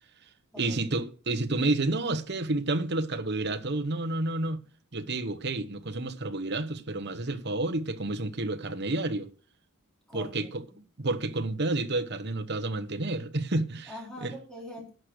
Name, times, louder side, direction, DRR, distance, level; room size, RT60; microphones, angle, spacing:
voice 1, 0.6-4.6 4.9-9.3 10.1-10.6 11.0-13.9 14.2-14.3, right 2 dB, 50° right, 1.0 m, -30 dB
voice 2, 10.1-10.8 13.9-14.9, equal, 5° left, 4.0 m, -43 dB
11.0 x 6.5 x 6.3 m
head